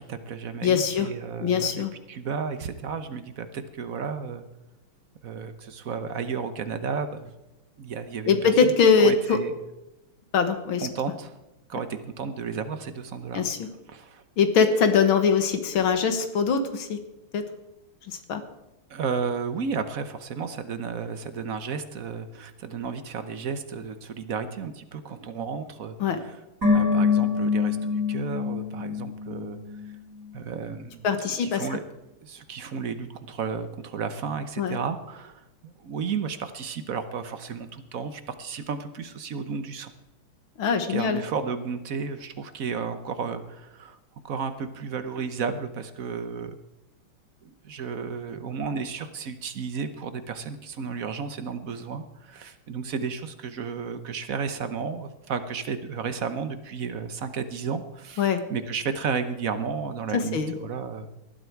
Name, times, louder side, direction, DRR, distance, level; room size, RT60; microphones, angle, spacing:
voice 1, 0.0-4.4 5.2-7.3 7.8-8.7 9.0-9.5 10.8-11.4 11.7-13.5 13.9-14.2 18.9-26.4 26.7-29.6 30.3-31.8 32.2-39.9 40.9-44.0 44.2-46.5 47.4-61.1, right 5 dB, 55° right, 10 dB, 1.0 m, -33 dB
voice 2, 0.6-1.1 1.4-1.9 8.3-9.4 10.3-10.9 13.3-13.7 14.4-17.0 17.3-17.4 18.1-18.4 26.0-26.2 31.0-31.6 34.6-34.8 40.6-41.2 58.2-58.4 60.1-60.5, left 6 dB, 70° left, 8 dB, 2.1 m, -22 dB
sound 1, 26.6-29.9 30.2-30.3, left 5 dB, 35° right, 3.9 m, -25 dB
19.0 x 11.5 x 4.6 m, 0.97 s
omnidirectional pair, 2.4 m